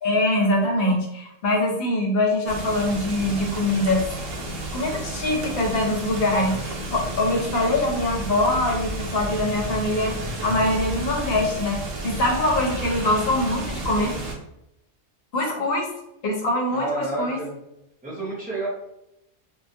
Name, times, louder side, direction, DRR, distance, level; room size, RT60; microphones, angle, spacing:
voice 1, 0.0-4.0 4.7-10.2 10.4-14.1 15.3-15.9 16.2-17.4, left 1 dB, 60° left, 0 dB, 0.7 m, -23 dB
sound 1, 2.5-14.3, right 1 dB, 60° right, 0.7 m, -32 dB
voice 2, 7.0-7.4 14.0-14.3 16.7-17.5 18.0-18.7, right 2 dB, 10° right, -6 dB, 0.6 m, -31 dB
2.2 x 2.1 x 2.6 m, 0.85 s
omnidirectional pair, 1.3 m